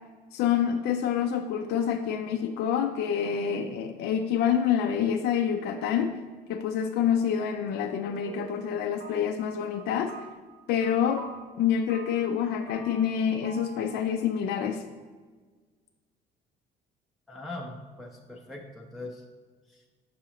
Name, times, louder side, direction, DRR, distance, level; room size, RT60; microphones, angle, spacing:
voice 1, 0.3-6.2 6.5-10.1 10.7-11.3 11.6-14.8, left 8 dB, 75° left, 6 dB, 0.4 m, -27 dB
sound 1, 8.0-8.7 9.0-9.5 9.7-11.5 11.9-12.4 12.7-13.2 13.4-14.3 14.6-14.7, right 4 dB, 70° right, 0.9 m, -46 dB
voice 2, 17.3-19.2 19.7-19.8, left 2 dB, ahead, -1 dB, 0.5 m, -41 dB
6.8 x 4.9 x 2.8 m, 1.4 s
cardioid pair, 110°, 17 cm